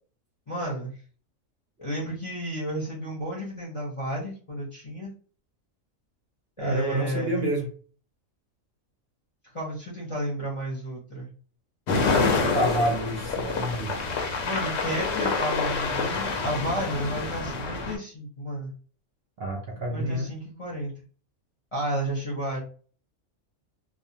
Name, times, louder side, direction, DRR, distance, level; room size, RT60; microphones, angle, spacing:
voice 1, 0.5-0.9 1.8-5.1 6.6-7.4 9.5-11.3 14.4-18.7 19.9-20.9 21.7-22.6, right 1 dB, 35° left, -6 dB, 0.6 m, -32 dB
voice 2, 6.6-7.7 12.2-14.0 19.4-20.3, right 1 dB, 60° right, 0 dB, 0.7 m, -28 dB
sound 1, 11.9-18.0, left 4 dB, 65° left, 0.8 m, -27 dB
2.4 x 2.1 x 2.7 m, 0.41 s
omnidirectional pair, 1.4 m